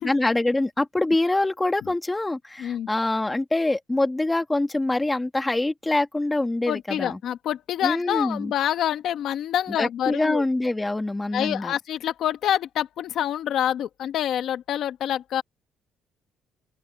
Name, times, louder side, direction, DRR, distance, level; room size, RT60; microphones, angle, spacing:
voice 1, 0.0-7.2 7.8-8.5 9.8-11.7, left 2 dB, 10° left, 1.9 m, -25 dB
voice 2, 6.7-10.4 11.3-15.4, left 10 dB, 60° left, 1.3 m, -26 dB
open air
cardioid pair, 150°, 0 cm